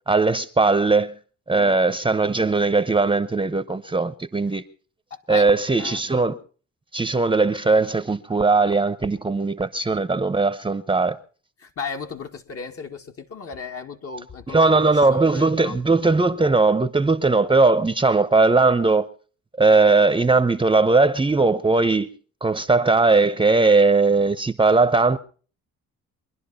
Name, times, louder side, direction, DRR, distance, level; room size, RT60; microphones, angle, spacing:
voice 1, 0.1-1.1 1.5-4.6 5.3-6.4 6.9-11.2 14.5-19.1 19.6-22.1 22.4-25.2, right 3 dB, 15° right, 0.8 m, -19 dB
voice 2, 5.1-5.5 5.8-6.0 11.6-15.8, left 6 dB, 50° left, 2.0 m, -35 dB
23.5 x 11.0 x 5.5 m
cardioid pair, 90°, 30 cm